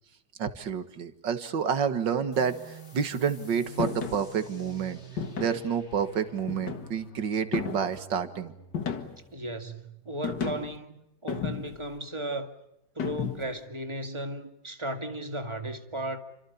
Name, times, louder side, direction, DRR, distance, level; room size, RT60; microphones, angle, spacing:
voice 1, 0.4-5.0 5.4-8.5, right 7 dB, 75° right, 2.3 m, -29 dB
sound 1, 2.3-9.6, equal, 35° left, 3.2 m, -47 dB
sound 2, 3.8-4.2 5.2-5.7 6.5-7.0 7.5-8.0 8.7-9.3 10.2-10.8 11.3-11.9 13.0-13.6, left 7 dB, 70° left, 2.4 m, -33 dB
voice 2, 9.3-12.5 12.9-16.2, right 1 dB, 15° right, 2.1 m, -35 dB
29.0 x 25.5 x 7.1 m
omnidirectional pair, 2.0 m